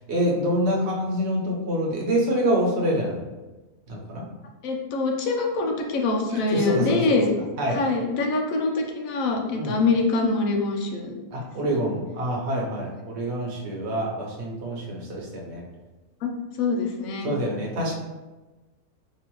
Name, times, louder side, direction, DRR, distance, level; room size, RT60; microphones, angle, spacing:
voice 1, 0.1-3.2 3.9-4.2 6.3-7.0 7.6-7.8 9.5-9.8 11.3-15.6 17.2-17.9, equal, 55° right, -2 dB, 1.0 m, -26 dB
voice 2, 4.6-7.3 7.7-11.1 11.6-11.7 16.2-16.3 16.6-17.3, left 3 dB, 70° left, 1 dB, 1.0 m, -24 dB
4.2 x 2.5 x 3.0 m, 1.2 s
omnidirectional pair, 1.6 m